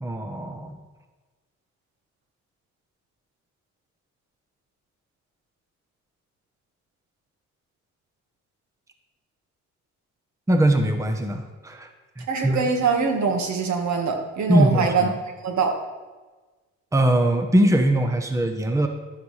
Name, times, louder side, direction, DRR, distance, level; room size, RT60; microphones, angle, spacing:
voice 1, 0.0-0.8 10.5-11.9 12.2-12.6 14.5-15.1 16.9-18.9, right 1 dB, 10° right, 6 dB, 0.9 m, -21 dB
voice 2, 12.3-15.1 15.4-15.7, right 5 dB, 70° right, 3 dB, 1.6 m, -23 dB
12.0 x 9.3 x 3.3 m, 1.3 s
cardioid pair, 90°, 30 cm